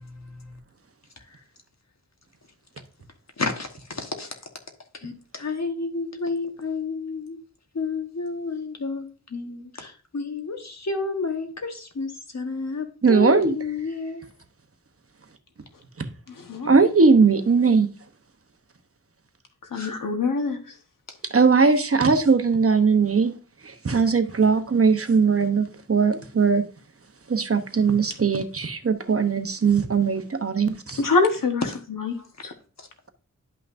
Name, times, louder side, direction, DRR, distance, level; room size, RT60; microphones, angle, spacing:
voice 1, 3.4-4.3 5.0-7.4 7.7-9.0 9.3-14.2 19.7-19.9, left 4 dB, 55° left, 1.3 m, -30 dB
voice 2, 13.0-13.5 16.7-17.9 21.3-23.3 23.8-26.6 27.3-31.0, right 5 dB, 45° right, 0.9 m, -19 dB
voice 3, 16.3-16.7 19.7-20.6 31.0-31.6 31.9-32.5, left 4 dB, 90° left, 1.3 m, -24 dB
10.5 x 5.7 x 2.6 m
wide cardioid pair, 80°, 32 cm